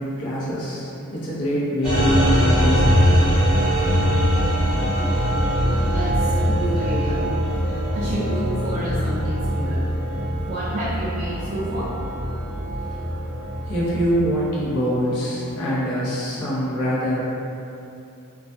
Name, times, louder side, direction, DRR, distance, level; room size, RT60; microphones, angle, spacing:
voice 1, 0.0-2.9 6.5-6.6 12.6-12.7 13.0-17.2, equal, 80° left, -7 dB, 0.7 m, -24 dB
sound 1, 1.8-14.4, equal, 5° right, 0.7 m, -22 dB
voice 2, 6.4-7.2 7.9-9.8 10.2-11.9, right 1 dB, 40° right, -9 dB, 0.4 m, -29 dB
2.3 x 2.2 x 2.5 m, 2.8 s
head